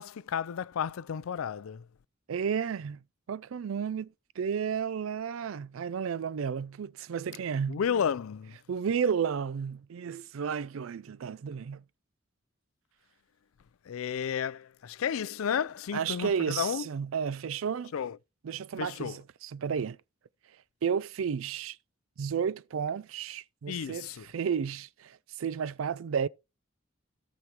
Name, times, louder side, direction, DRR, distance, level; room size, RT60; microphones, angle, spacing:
voice 1, 0.0-1.8 7.7-8.6 13.9-16.8 17.9-18.2 18.8-19.2 23.7-24.2, left 7 dB, 90° left, 0.4 m, -32 dB
voice 2, 2.3-7.8 8.7-11.8 15.9-17.9 18.4-20.0 20.8-21.8 22.2-26.3, right 7 dB, 80° right, 0.4 m, -32 dB
17.5 x 6.2 x 2.9 m
head